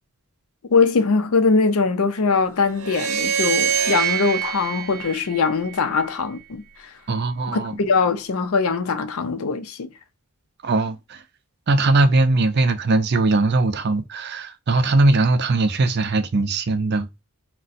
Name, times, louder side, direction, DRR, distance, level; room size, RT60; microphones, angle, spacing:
voice 1, 0.7-6.9 7.5-9.9, left 4 dB, 80° left, 0.5 m, -21 dB
sound 1, 2.8-6.1, right 8 dB, 85° right, 0.7 m, -25 dB
voice 2, 7.1-7.7 10.6-11.2 11.7-17.2, right 2 dB, 50° right, 0.5 m, -20 dB
2.6 x 2.2 x 3.9 m
head